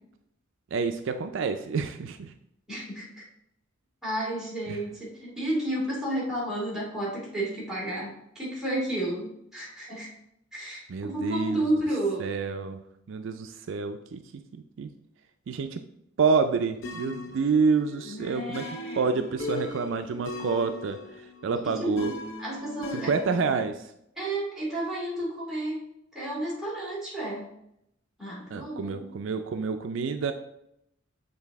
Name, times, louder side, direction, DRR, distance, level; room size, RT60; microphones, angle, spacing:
voice 1, 0.7-2.3 4.7-4.8 10.9-11.7 12.2-12.8 13.1-14.2 14.5-14.9 15.5-15.8 16.2-18.6 19.0-22.1 22.9-23.9 28.5-30.3, right 5 dB, 65° right, 8 dB, 0.4 m, -28 dB
voice 2, 2.7-3.2 4.0-10.1 10.5-12.3 18.0-19.2 21.5-22.1 22.4-23.1 24.2-25.8 26.1-27.5 28.2-29.1, right 1 dB, ahead, -8 dB, 2.4 m, -32 dB
sound 1, 16.8-23.7, left 2 dB, 70° left, 0.7 m, -39 dB
7.7 x 4.0 x 3.5 m, 0.78 s
head